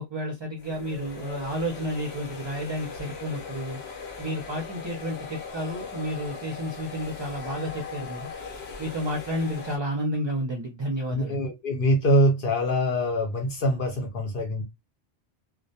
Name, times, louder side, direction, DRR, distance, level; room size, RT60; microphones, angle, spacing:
voice 1, 0.0-3.8 4.2-8.3 8.8-11.4, equal, 40° right, 0.4 m, -31 dB
sound 1, 0.6-9.8, left 5 dB, 90° left, 1.1 m, -39 dB
voice 2, 11.1-14.6, equal, 65° left, 0.8 m, -24 dB
2.2 x 2.1 x 2.6 m
omnidirectional pair, 1.0 m